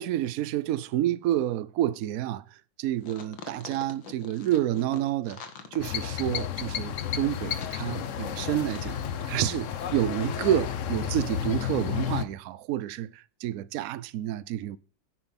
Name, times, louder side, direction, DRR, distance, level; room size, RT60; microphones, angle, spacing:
voice 1, 0.0-2.4 2.8-5.4 5.7-9.0 9.3-14.8, right 12 dB, 70° right, 0.8 m, -29 dB
sound 1, 3.0-8.9 9.2-9.3, left 6 dB, 85° left, 2.3 m, -44 dB
sound 2, 5.8-12.3, left 9 dB, 55° left, 0.9 m, -32 dB
10.0 x 7.2 x 5.8 m
omnidirectional pair, 2.0 m